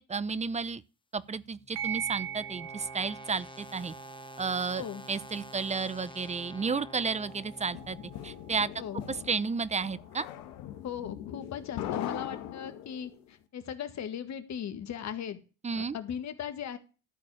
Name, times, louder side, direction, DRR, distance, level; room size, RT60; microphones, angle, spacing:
voice 1, 0.1-0.8 1.1-3.9 4.4-8.0 8.2-8.7 9.1-10.3 15.6-16.0, right 5 dB, 20° right, 0.8 m, -32 dB
sound 1, 1.2-8.3, left 3 dB, 15° left, 1.0 m, -50 dB
sound 2, 1.7-10.8, right 10 dB, 90° right, 1.3 m, -43 dB
sound 3, 7.3-13.2, left 11 dB, 75° left, 1.3 m, -40 dB
voice 2, 10.8-15.4 15.7-16.8, left 8 dB, 50° left, 1.9 m, -38 dB
13.0 x 4.4 x 8.6 m
supercardioid pair, 75°, 34 cm